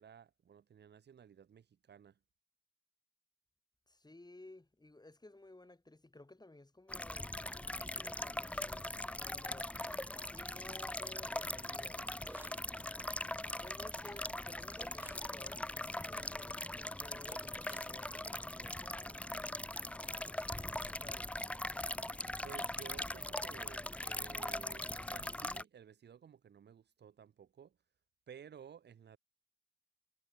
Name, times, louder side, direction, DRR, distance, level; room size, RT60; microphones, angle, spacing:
voice 1, 0.0-2.2 22.4-27.8 28.3-29.2, right 8 dB, 75° right, 1.2 m, -55 dB
voice 2, 3.9-7.4 7.7-9.7 10.2-12.1 13.6-19.2 20.0-21.2, left 2 dB, 25° left, 4.2 m, -56 dB
sound 1, 6.9-25.6, left 1 dB, 5° left, 0.4 m, -41 dB
sound 2, 12.2-12.7 14.7-15.3 17.2-18.0, right 1 dB, 10° right, 1.7 m, -55 dB
cardioid pair, 50°, 18 cm